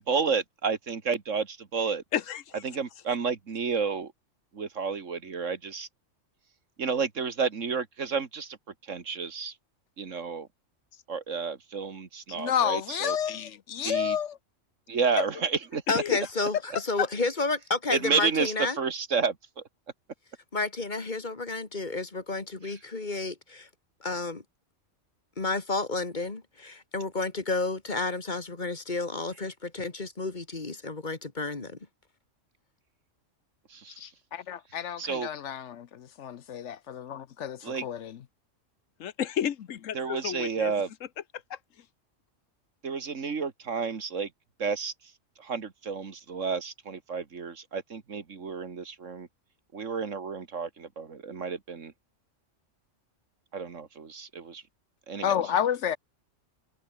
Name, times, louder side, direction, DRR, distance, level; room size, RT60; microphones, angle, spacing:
voice 1, 0.0-2.0 2.6-4.1 4.5-5.9 6.8-8.6 8.9-9.5 10.0-10.5 11.1-13.2 13.8-14.2 14.9-15.8 17.9-19.6 33.7-34.1 35.0-35.3 37.6-37.9 39.9-40.9 42.8-44.3 44.6-44.9 45.4-49.3 49.7-51.9 53.5-54.6 55.1-55.3, right 5 dB, 75° right, 2.1 m, -31 dB
voice 2, 2.1-2.6 15.9-16.2 17.0-17.1 39.0-40.7 41.5-41.6, left 9 dB, 85° left, 1.3 m, -31 dB
voice 3, 12.3-14.4 15.2-15.3 34.0-38.2 55.2-56.0, left 9 dB, 70° left, 1.1 m, -30 dB
voice 4, 15.9-18.8 20.5-23.7 24.0-24.4 25.4-31.8, left 3 dB, 35° left, 2.2 m, -31 dB
omnidirectional pair, 1.3 m